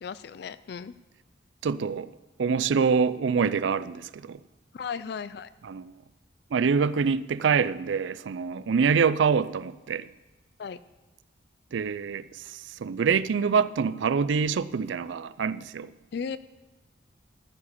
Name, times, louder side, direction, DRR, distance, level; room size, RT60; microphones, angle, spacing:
voice 1, 0.0-0.9 4.7-5.5 10.6-10.8 16.1-16.4, left 6 dB, 60° left, 0.4 m, -35 dB
voice 2, 1.6-2.1 2.4-4.4 5.6-5.9 6.5-10.1 11.7-15.9, right 6 dB, 80° right, 0.4 m, -25 dB
14.0 x 4.8 x 8.5 m
head